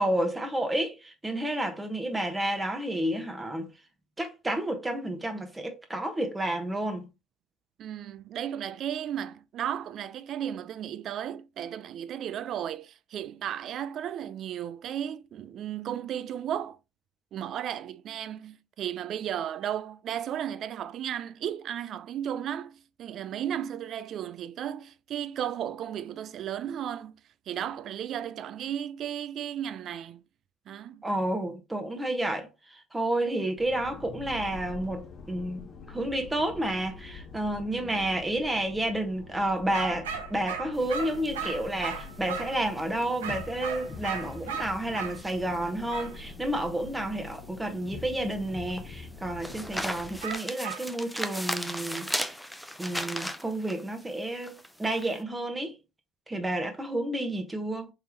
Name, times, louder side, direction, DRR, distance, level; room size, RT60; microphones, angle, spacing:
voice 1, 0.0-3.7 4.2-7.0 31.0-52.3 52.8-55.8 56.3-57.9, right 1 dB, 15° right, 1.1 m, -30 dB
voice 2, 7.8-16.8 17.3-27.1 27.5-30.2 30.7-31.0 37.7-38.0, right 10 dB, 55° right, 0.3 m, -34 dB
sound 1, 33.6-50.2, left 5 dB, 40° left, 0.9 m, -45 dB
sound 2, 39.7-42.6 43.2-45.2 45.9-46.1 50.2-50.9, right 6 dB, 90° right, 0.6 m, -36 dB
sound 3, 40.8-55.2, equal, ahead, 0.5 m, -38 dB
3.4 x 3.4 x 2.9 m
hypercardioid pair, 75°, 0 cm